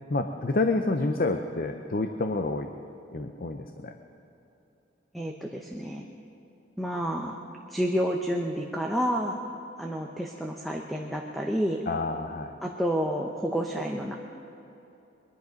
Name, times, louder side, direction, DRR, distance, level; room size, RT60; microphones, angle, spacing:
voice 1, 0.1-2.7 3.1-4.0 11.9-12.5, left 2 dB, 45° left, 6 dB, 0.6 m, -28 dB
voice 2, 5.1-6.1 6.8-7.4 7.7-9.4 9.8-11.8 12.6-14.1, equal, ahead, 0 dB, 0.7 m, -29 dB
22.5 x 11.0 x 5.2 m, 2.9 s
head